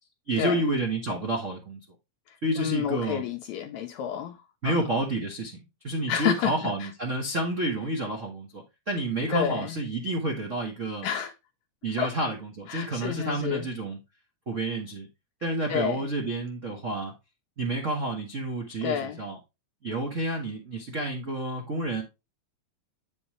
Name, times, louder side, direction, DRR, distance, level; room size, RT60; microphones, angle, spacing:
voice 1, 0.3-1.8 2.4-3.2 4.6-5.6 5.8-11.1 11.8-14.0 14.5-15.1 15.4-17.1 17.6-19.4 19.8-22.0, right 2 dB, 80° right, 0.6 m, -29 dB
voice 2, 2.6-4.4 4.6-4.8 6.1-6.5 6.8-6.9 9.3-9.7 11.0-11.3 12.0-12.1 12.7-13.6 15.7-16.1 18.8-19.2, left 9 dB, 80° left, 1.7 m, -29 dB
8.6 x 5.3 x 3.0 m
omnidirectional pair, 3.6 m